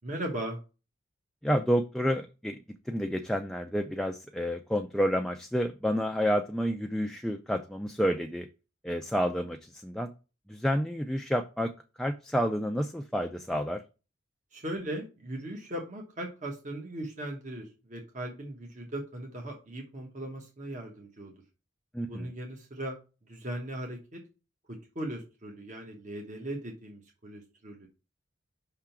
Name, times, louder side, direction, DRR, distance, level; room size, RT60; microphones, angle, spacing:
voice 1, 0.0-0.6 14.5-21.4 22.1-23.0 23.2-24.2 24.9-27.9, right 1 dB, 40° right, 1 dB, 1.1 m, -38 dB
voice 2, 1.4-2.6 2.9-8.5 8.8-10.1 10.5-11.7 12.0-13.8 21.9-22.3, equal, ahead, 5 dB, 0.4 m, -29 dB
5.6 x 3.7 x 5.7 m, 0.31 s
head